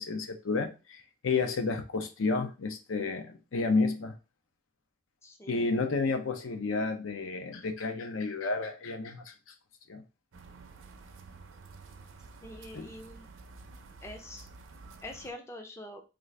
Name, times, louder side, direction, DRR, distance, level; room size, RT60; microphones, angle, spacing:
voice 1, 0.0-4.1 5.5-9.3 9.9-10.0 12.7-12.9, left 3 dB, 75° left, 0.5 m, -31 dB
voice 2, 5.2-5.7 12.4-13.3 14.0-14.5 15.0-16.0, left 1 dB, 15° left, 0.4 m, -44 dB
sound 1, 10.3-15.3, right 3 dB, 70° right, 0.5 m, -50 dB
3.8 x 2.4 x 3.2 m
head